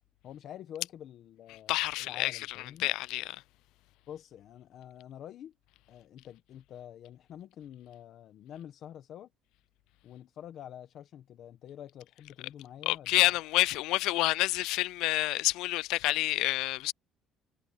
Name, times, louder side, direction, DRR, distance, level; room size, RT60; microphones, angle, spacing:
voice 1, 0.2-2.9 4.1-5.5 5.9-9.3 10.0-13.4, left 10 dB, 50° left, 1.1 m, -47 dB
voice 2, 1.7-2.3 2.8-3.4 12.9-16.9, left 19 dB, 80° left, 0.4 m, -28 dB
cardioid pair, 155°, 0 cm